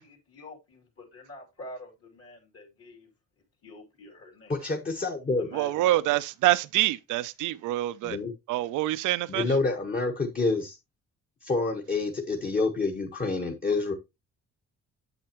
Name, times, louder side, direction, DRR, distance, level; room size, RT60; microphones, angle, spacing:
voice 1, 0.0-3.1 3.6-4.5 5.4-5.7, left 1 dB, 50° left, 2.7 m, -46 dB
voice 2, 4.5-5.5 8.0-8.3 9.3-10.8 11.4-13.9, left 3 dB, 30° left, 1.2 m, -28 dB
voice 3, 5.5-8.2 8.5-9.4, right 16 dB, 80° right, 0.5 m, -26 dB
7.9 x 7.0 x 3.0 m
cardioid pair, 90°, 30 cm